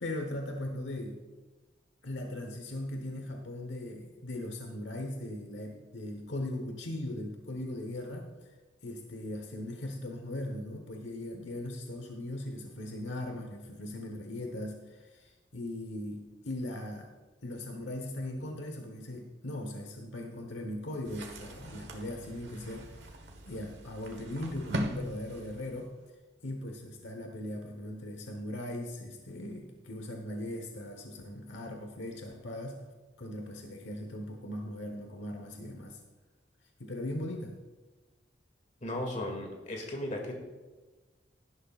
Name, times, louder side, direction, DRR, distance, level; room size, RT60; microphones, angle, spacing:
voice 1, 0.0-1.2 2.0-8.5 8.8-17.1 17.4-23.0 23.5-25.9 26.4-32.8 33.2-36.0 36.8-37.5, left 1 dB, 85° left, 4 dB, 1.2 m, -39 dB
sound 1, 21.0-26.0, equal, 70° right, 1.4 m, -41 dB
voice 2, 38.8-40.3, left 1 dB, 45° left, 1 dB, 2.4 m, -36 dB
16.5 x 11.0 x 2.5 m, 1.2 s
head